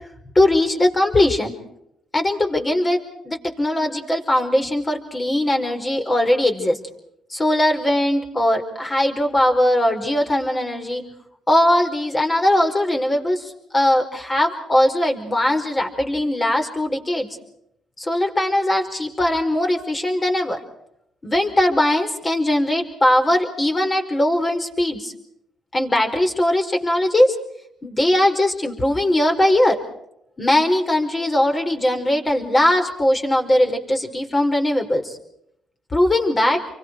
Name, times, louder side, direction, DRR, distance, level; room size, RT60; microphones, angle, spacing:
voice 1, 0.4-1.5 2.1-3.0 3.3-6.8 7.3-11.0 11.5-17.3 18.0-20.6 21.2-25.1 25.7-27.4 27.8-29.8 30.4-35.2 35.9-36.6, left 1 dB, 25° left, 4 dB, 5.1 m, -20 dB
29.5 x 24.5 x 4.8 m, 0.76 s
cardioid pair, 90°, 0 cm